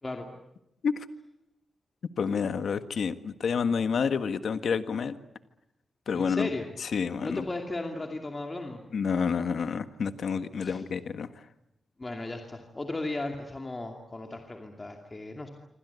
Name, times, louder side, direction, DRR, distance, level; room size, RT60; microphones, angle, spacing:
voice 1, 2.2-5.1 6.1-6.5 6.9-7.4 8.9-11.3, left 6 dB, 65° left, 10 dB, 1.6 m, -28 dB
voice 2, 6.1-6.7 7.2-8.8 10.6-10.8 12.0-15.5, left 2 dB, 20° left, 3 dB, 2.6 m, -36 dB
27.5 x 25.5 x 8.3 m, 0.84 s
wide cardioid pair, 160°, 0 cm